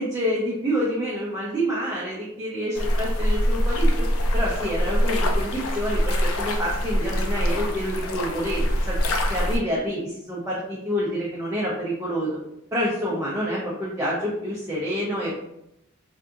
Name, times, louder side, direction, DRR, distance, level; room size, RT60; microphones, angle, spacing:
voice 1, 0.0-4.1 4.3-9.0 9.3-12.4 12.7-15.4, equal, 15° right, -6 dB, 0.6 m, -27 dB
sound 1, 2.7-9.6, equal, 85° left, 0.5 m, -24 dB
3.5 x 2.7 x 2.5 m, 0.83 s
head